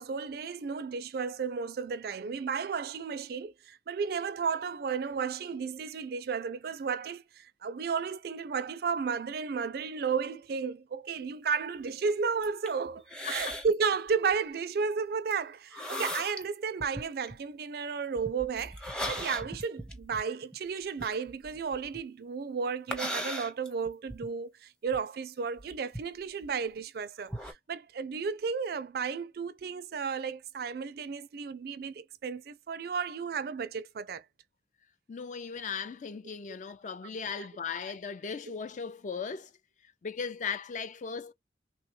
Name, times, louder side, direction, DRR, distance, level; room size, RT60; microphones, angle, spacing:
voice 1, 0.0-34.2, right 5 dB, 55° right, 0.4 m, -33 dB
sound 1, 12.3-12.7 13.1-13.7 14.1-14.3 15.3-15.4 15.7-16.4 16.8-17.3 18.1-22.0 22.9-24.3 24.9-25.0 25.6-26.8 27.2-27.5, equal, 5° left, 0.7 m, -37 dB
voice 2, 35.1-39.5 40.0-41.3, left 6 dB, 45° left, 0.4 m, -37 dB
3.3 x 2.2 x 3.1 m
head